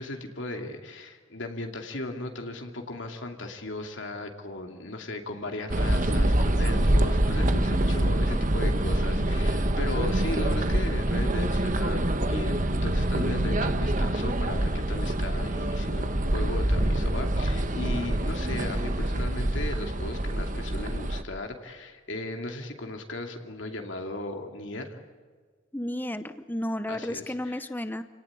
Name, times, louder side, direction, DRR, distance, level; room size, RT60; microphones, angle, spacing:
voice 1, 0.0-25.0 26.9-27.7, left 2 dB, 65° left, 4 dB, 2.6 m, -36 dB
sound 1, 5.7-21.2, right 1 dB, 40° right, 1.3 m, -25 dB
voice 2, 25.7-28.0, left 1 dB, 10° left, 10 dB, 0.8 m, -32 dB
29.0 x 18.0 x 9.9 m, 1.5 s
head